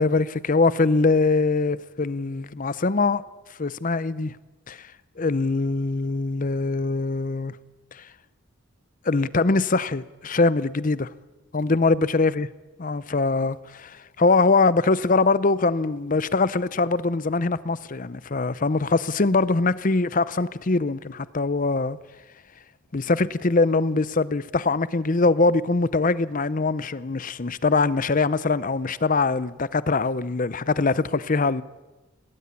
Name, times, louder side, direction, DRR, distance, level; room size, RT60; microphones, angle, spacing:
voice 1, 0.0-3.2 3.6-4.3 4.7-4.9 5.2-7.5 7.9-8.0 9.0-11.1 11.5-12.5 12.8-22.0 22.9-31.6, left 3 dB, 40° left, 0.7 m, -22 dB
18.5 x 18.0 x 9.6 m
head